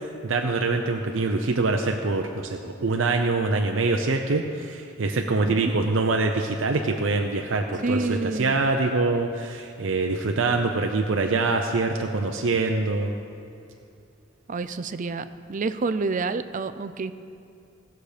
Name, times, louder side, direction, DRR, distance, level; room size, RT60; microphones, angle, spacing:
voice 1, 0.2-13.1, right 3 dB, 80° right, 3 dB, 0.6 m, -24 dB
voice 2, 7.8-8.6 14.5-17.1, right 3 dB, 40° right, 12 dB, 0.4 m, -28 dB
18.0 x 6.6 x 5.0 m, 2.6 s
head